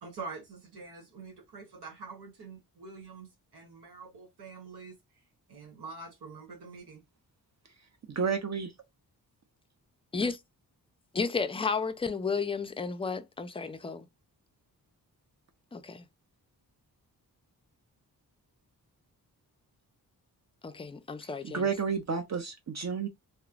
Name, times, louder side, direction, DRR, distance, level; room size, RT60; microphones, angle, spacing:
voice 1, 0.0-5.0 5.5-7.0, right 4 dB, 90° right, 1.2 m, -45 dB
voice 2, 8.1-8.7 21.2-23.1, right 5 dB, 45° right, 0.7 m, -31 dB
voice 3, 11.1-14.1 15.7-16.1 20.6-21.7, left 5 dB, 15° left, 0.4 m, -32 dB
2.9 x 2.1 x 2.4 m
cardioid pair, 70°, 39 cm